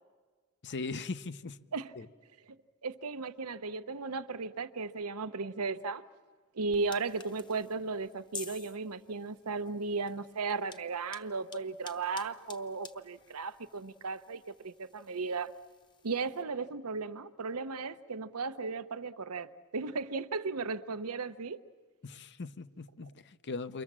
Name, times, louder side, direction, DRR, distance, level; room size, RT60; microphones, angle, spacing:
voice 1, 0.6-1.6 2.0-2.1 22.0-23.8, left 3 dB, 55° left, 0.8 m, -39 dB
voice 2, 2.8-6.0 6.5-15.5 16.0-21.6, right 4 dB, 80° right, 0.9 m, -36 dB
sound 1, 6.7-16.4, left 4 dB, 20° left, 1.0 m, -52 dB
29.0 x 24.0 x 7.4 m
head